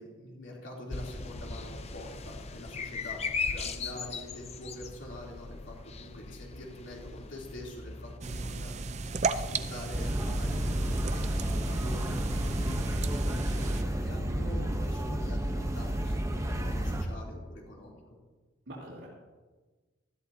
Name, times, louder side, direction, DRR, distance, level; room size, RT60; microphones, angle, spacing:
voice 1, 0.0-3.2 3.5-8.7 9.1-18.2, left 1 dB, 70° left, -3 dB, 3.2 m, -45 dB
sound 1, 0.9-8.2, left 4 dB, 30° left, 0.7 m, -38 dB
sound 2, 8.2-13.8, right 3 dB, 35° right, 0.5 m, -35 dB
sound 3, 9.9-17.0, right 1 dB, 15° right, 0.8 m, -31 dB
voice 2, 14.2-14.7 18.7-19.1, equal, 80° right, -9 dB, 3.3 m, -43 dB
19.5 x 13.5 x 2.8 m, 1.3 s
head